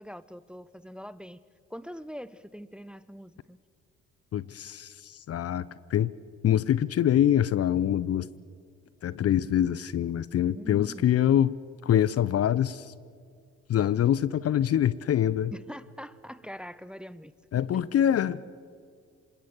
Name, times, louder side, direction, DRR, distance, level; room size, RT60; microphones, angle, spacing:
voice 1, 0.0-1.4 1.7-3.6 10.5-11.1 15.5-17.3, equal, 5° right, 17 dB, 0.8 m, -43 dB
voice 2, 4.3-6.1 6.4-8.3 9.0-11.5 11.8-12.9 13.7-15.5 17.5-18.4, left 10 dB, 45° left, 19 dB, 0.7 m, -25 dB
26.0 x 20.5 x 7.3 m, 2.2 s
hypercardioid pair, 50°, 34 cm